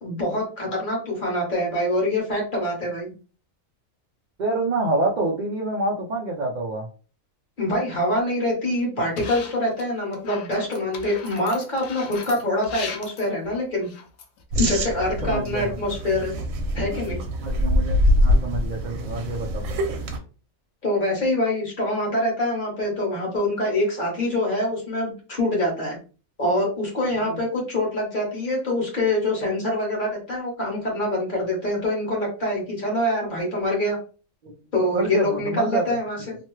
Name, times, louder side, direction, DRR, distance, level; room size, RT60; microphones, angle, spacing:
voice 1, 0.0-3.1 7.6-13.9 14.6-16.3 16.7-17.2 20.8-26.0 26.4-34.0 34.7-36.4, left 1 dB, 40° left, -3 dB, 1.3 m, -25 dB
voice 2, 4.4-6.9 15.2-15.7 17.4-19.6 27.3-27.4 34.4-34.5 34.9-36.0, right 2 dB, 60° right, -2 dB, 0.4 m, -27 dB
sound 1, 9.2-9.8 10.1-14.4, left 5 dB, 80° left, 1.0 m, -38 dB
sound 2, 14.5-20.2, left 1 dB, 85° right, 1.0 m, -24 dB
2.9 x 2.2 x 3.1 m, 0.36 s
omnidirectional pair, 1.4 m